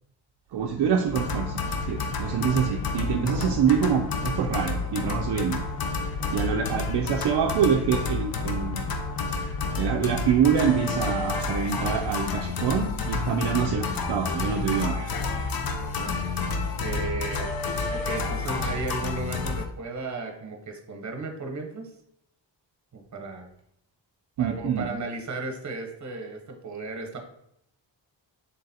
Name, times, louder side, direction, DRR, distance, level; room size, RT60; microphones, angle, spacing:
voice 1, 0.5-1.6 1.9-5.6 6.3-8.9 9.3-15.1 24.4-24.9, right 7 dB, 60° right, 3 dB, 0.5 m, -26 dB
sound 1, 1.1-19.7, left 4 dB, 50° left, 0.6 m, -30 dB
voice 2, 1.9-2.5 6.0-6.5 13.4-13.5 15.8-16.2 16.8-17.5 17.9-21.9 22.9-23.5 24.4-27.2, right 3 dB, 40° right, 3 dB, 0.9 m, -35 dB
3.9 x 3.8 x 2.7 m, 0.76 s
cardioid pair, 85°, 45 cm